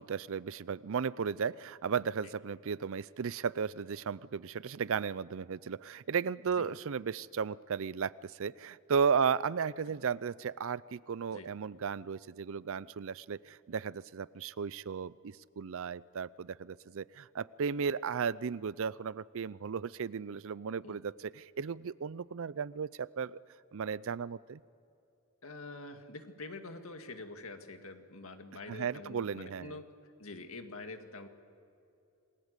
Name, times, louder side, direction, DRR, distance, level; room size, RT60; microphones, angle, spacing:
voice 1, 0.0-23.4 23.7-24.6 28.7-29.8, right 6 dB, 65° right, 20 dB, 0.5 m, -35 dB
voice 2, 25.4-29.9 30.2-31.3, left 2 dB, 70° left, 6 dB, 2.0 m, -46 dB
27.5 x 20.5 x 8.2 m, 2.6 s
head